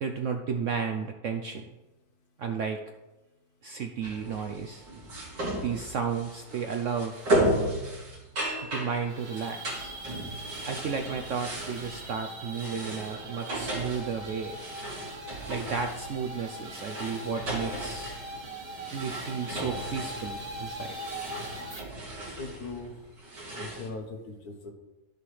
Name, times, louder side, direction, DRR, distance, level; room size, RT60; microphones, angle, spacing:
voice 1, 0.0-1.7 2.4-2.8 3.6-4.9 5.6-7.4 8.7-10.0 10.7-14.6 15.5-18.2 18.9-21.0, right 6 dB, 65° right, 4 dB, 0.8 m, -33 dB
sound 1, 4.0-23.9, right 1 dB, 85° right, 3.0 m, -35 dB
sound 2, 8.8-21.8, right 1 dB, 30° right, 0.8 m, -41 dB
voice 2, 22.4-22.9 23.5-24.7, left 3 dB, 65° left, 4 dB, 1.5 m, -39 dB
12.5 x 6.9 x 3.2 m, 1.1 s
omnidirectional pair, 1.9 m